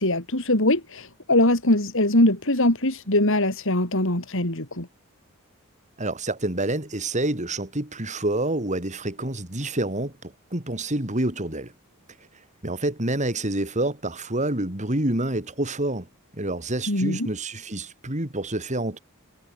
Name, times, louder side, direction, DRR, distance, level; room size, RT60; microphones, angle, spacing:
voice 1, 0.0-4.9 16.9-17.3, left 1 dB, 60° left, 4.8 m, -22 dB
voice 2, 6.0-11.7 12.6-16.1 16.4-19.0, right 1 dB, 35° right, 3.5 m, -27 dB
head